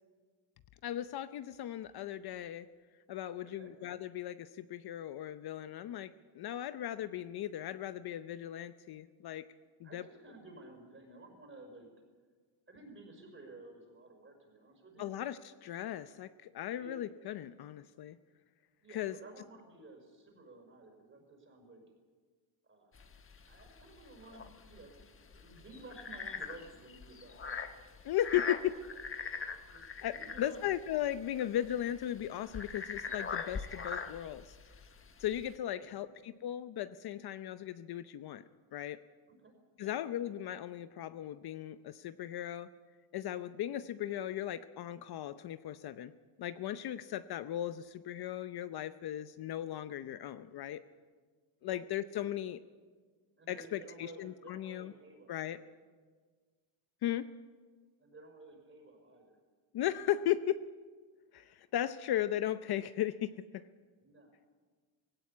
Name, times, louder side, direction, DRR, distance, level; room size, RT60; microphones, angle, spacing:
voice 1, 0.8-2.7 3.1-9.4 9.8-10.0 15.0-18.2 18.9-19.1 28.0-28.7 30.0-34.5 35.2-38.4 38.7-39.0 39.8-42.7 43.1-46.1 46.4-50.8 51.6-52.6 53.5-54.9 55.3-55.6 57.0-57.3 59.7-60.6 61.3-63.7, left 12 dB, 55° left, 12 dB, 0.7 m, -37 dB
voice 2, 9.8-11.9 12.7-15.1 16.8-17.0 18.8-21.8 22.7-23.1 23.5-27.6 29.7-30.6 35.8-36.1 39.3-40.0 51.6-51.8 53.4-55.7 58.0-59.4 64.0-64.4, right 2 dB, 25° right, 3 dB, 5.5 m, -54 dB
sound 1, 22.9-35.6, left 5 dB, 25° left, 1.2 m, -42 dB
18.0 x 17.0 x 8.4 m, 1.5 s
cardioid pair, 130°, 47 cm